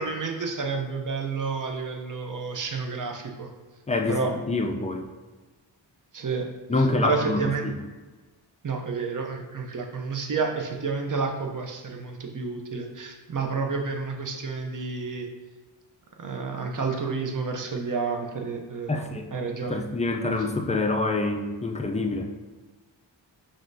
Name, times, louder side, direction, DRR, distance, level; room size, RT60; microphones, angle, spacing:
voice 1, 0.0-3.5 4.1-4.3 6.1-6.5 6.8-7.7 8.6-15.3 16.2-19.1 19.3-19.8, right 4 dB, 45° right, 3 dB, 0.6 m, -30 dB
voice 2, 3.9-5.1 6.7-7.8 18.9-19.3 19.6-22.3, left 2 dB, 15° left, 4 dB, 0.3 m, -26 dB
5.6 x 2.5 x 2.6 m, 1.3 s
wide cardioid pair, 60°, 47 cm